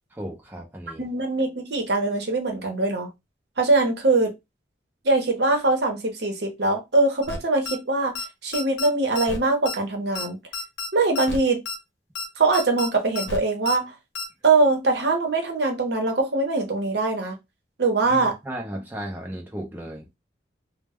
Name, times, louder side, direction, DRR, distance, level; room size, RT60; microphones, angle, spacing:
voice 1, 0.1-1.0 18.0-20.1, right 1 dB, 10° right, 0.5 m, -35 dB
voice 2, 1.0-3.1 3.6-4.3 5.0-10.4 10.9-11.6 12.4-13.9 14.4-17.4 17.8-18.3, right 3 dB, 65° right, 0.8 m, -22 dB
sound 1, 7.2-7.4 7.7-7.8 8.2-8.3 8.5-8.9 9.2-9.4 9.7-9.8 10.2-10.3 10.5-10.9 11.2-11.4 11.7-11.8 12.2-12.3 12.5-12.9 13.2-13.4 13.7-13.8 14.2-14.3, left 3 dB, 85° left, 0.7 m, -31 dB
2.2 x 2.0 x 3.4 m
head